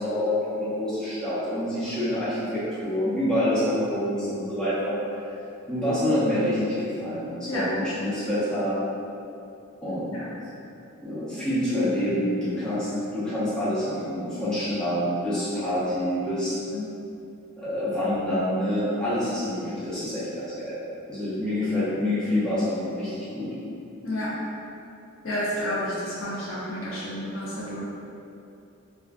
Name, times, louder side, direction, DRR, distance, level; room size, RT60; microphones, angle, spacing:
voice 1, 0.0-5.0 5.7-8.8 9.8-10.2 11.0-12.9 13.1-16.6 17.6-20.7 21.1-23.5, left 1 dB, 5° left, -14 dB, 0.6 m, -27 dB
voice 2, 24.0-24.3 25.2-27.8, left 1 dB, 65° left, -8 dB, 0.6 m, -30 dB
2.4 x 2.3 x 2.3 m, 2.7 s
head